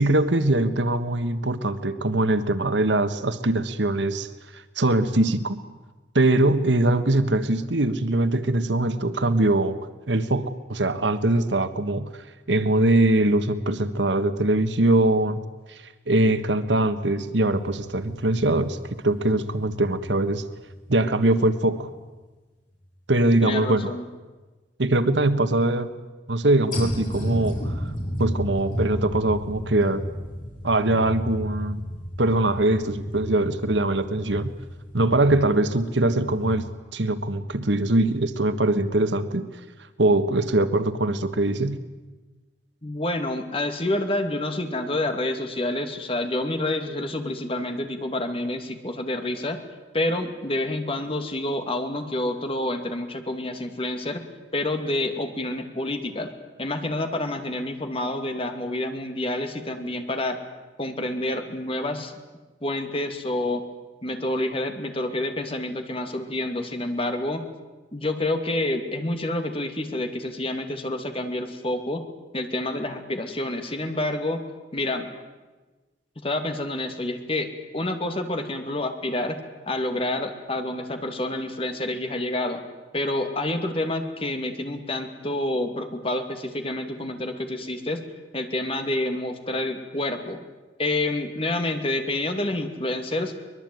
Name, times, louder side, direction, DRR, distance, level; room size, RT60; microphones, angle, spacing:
voice 1, 0.0-5.6 6.1-9.8 10.1-12.1 12.5-15.4 15.7-15.8 16.1-18.8 19.0-20.4 20.9-21.9 23.1-23.9 24.8-25.9 26.3-27.9 28.2-30.0 30.6-31.8 32.2-34.5 34.9-36.7 36.9-39.5 40.0-41.8, right 2 dB, 80° right, 11 dB, 1.4 m, -22 dB
sound 1, 17.5-21.2 21.7-21.8 26.7-36.6, equal, 45° left, 7.0 m, -33 dB
voice 2, 23.4-24.1 42.8-49.6 49.9-54.3 54.5-56.3 56.6-60.4 60.8-62.1 62.6-63.6 64.0-67.4 67.9-72.1 72.3-74.4 74.7-75.1 76.2-79.4 79.7-82.6 82.9-88.0 88.3-90.4 90.8-93.3, left 1 dB, 30° left, 6 dB, 2.7 m, -28 dB
23.5 x 21.0 x 9.3 m, 1.2 s
head